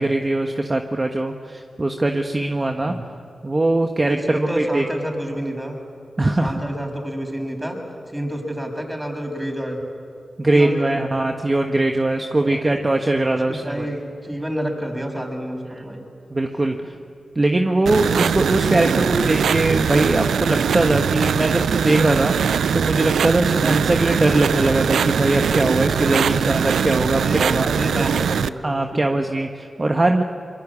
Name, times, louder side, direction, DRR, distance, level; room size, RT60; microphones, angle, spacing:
voice 1, 0.0-2.9 3.4-4.8 6.2-6.6 10.4-13.9 15.7-15.8 16.3-16.9 17.3-22.3 22.7-27.7 28.6-30.2, right 2 dB, 35° right, 3 dB, 1.5 m, -21 dB
voice 2, 4.0-5.8 6.4-7.8 8.1-9.8 10.5-11.2 12.2-12.8 13.5-16.1 23.5-23.8 27.1-28.5 28.9-29.0, equal, 10° right, 2 dB, 6.8 m, -29 dB
sound 1, 17.9-28.5, right 7 dB, 90° right, 0.5 m, -21 dB
25.0 x 22.5 x 8.7 m, 2.3 s
cardioid pair, 45°, 0 cm